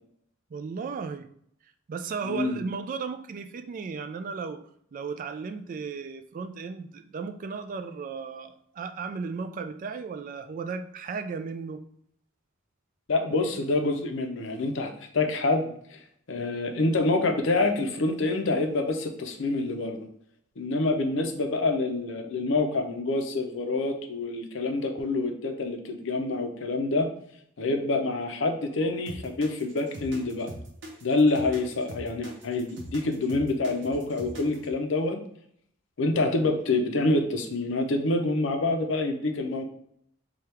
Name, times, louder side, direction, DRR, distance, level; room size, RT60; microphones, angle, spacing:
voice 1, 0.5-1.3 1.9-4.6 4.9-11.8, right 5 dB, 45° right, 8 dB, 0.3 m, -35 dB
voice 2, 2.2-2.6 13.1-16.0 16.3-20.1 20.6-27.1 27.6-30.5 31.0-35.2 36.0-39.6, left 2 dB, 70° left, 5 dB, 0.6 m, -27 dB
sound 1, 29.1-34.7, right 1 dB, 65° right, 0.8 m, -41 dB
3.4 x 2.3 x 4.3 m, 0.68 s
head